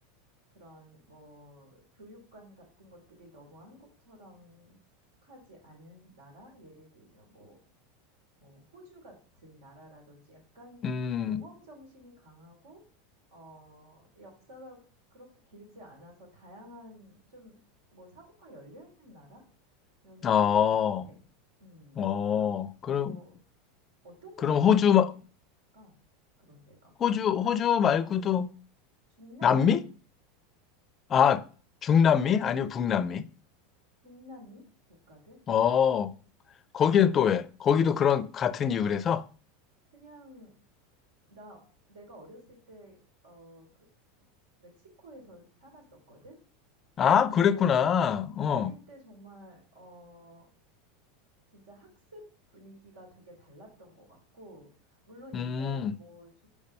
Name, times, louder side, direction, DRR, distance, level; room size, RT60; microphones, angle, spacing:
voice 1, 0.5-4.8 5.2-7.6 8.4-10.8 11.2-12.8 13.3-14.8 15.1-17.6 17.9-19.4 20.0-21.2 21.6-22.5 22.8-23.3 24.0-25.2 25.7-26.0 26.4-26.9 27.4-27.7 28.0-28.4 29.2-29.8 34.0-35.4 39.9-40.6 41.3-43.9 44.6-46.4 47.3-47.7 48.4-50.5 51.5-52.2 52.5-54.7 55.1-56.5, equal, 85° right, 3.4 m, -52 dB
voice 2, 10.8-11.4 20.2-21.1 22.0-23.1 24.4-25.1 27.0-28.5 29.4-29.8 31.1-31.4 31.8-33.3 35.5-36.1 36.7-39.2 47.0-48.7 55.3-55.9, left 8 dB, 30° left, 0.4 m, -24 dB
5.3 x 4.9 x 5.3 m
supercardioid pair, 115°, 0 cm